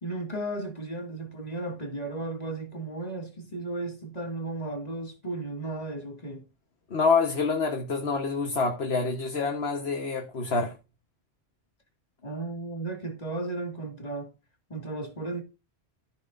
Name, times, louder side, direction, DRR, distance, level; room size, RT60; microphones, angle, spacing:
voice 1, 0.0-6.5 12.2-14.3 14.7-15.4, right 2 dB, 35° left, 2.2 m, -35 dB
voice 2, 6.9-10.8, left 4 dB, 70° left, 1.5 m, -27 dB
14.0 x 6.4 x 2.6 m
omnidirectional pair, 1.1 m